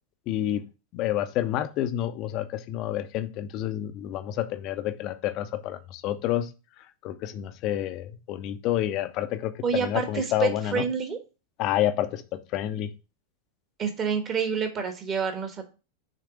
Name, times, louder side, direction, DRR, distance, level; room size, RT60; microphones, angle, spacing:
voice 1, 0.3-0.6 0.9-6.5 7.0-10.8 11.6-12.9, left 12 dB, 40° left, 11 dB, 0.6 m, -29 dB
voice 2, 9.6-11.2 13.8-15.6, right 6 dB, 25° right, 6 dB, 1.3 m, -28 dB
6.6 x 3.3 x 4.8 m, 0.32 s
figure-of-eight pair, 90°, 0 cm